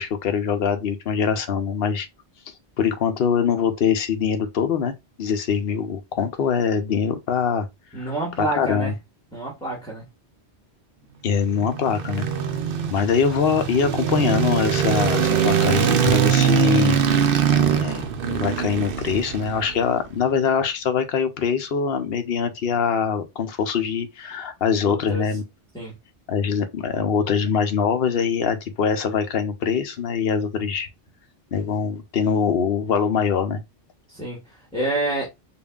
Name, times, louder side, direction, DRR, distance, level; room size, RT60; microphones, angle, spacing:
voice 1, 0.0-2.1 2.8-4.9 5.2-7.7 8.0-8.1 8.4-8.9 11.2-12.3 12.9-17.0 17.5-25.4 26.3-30.9 31.5-33.6, left 6 dB, 60° left, 0.9 m, -23 dB
voice 2, 7.9-8.9 9.3-10.0 24.8-25.2 25.7-25.9 34.1-35.2, right 2 dB, 5° left, 1.3 m, -28 dB
sound 1, 11.4-19.8, right 8 dB, 60° right, 0.8 m, -22 dB
5.2 x 2.6 x 2.3 m
omnidirectional pair, 1.1 m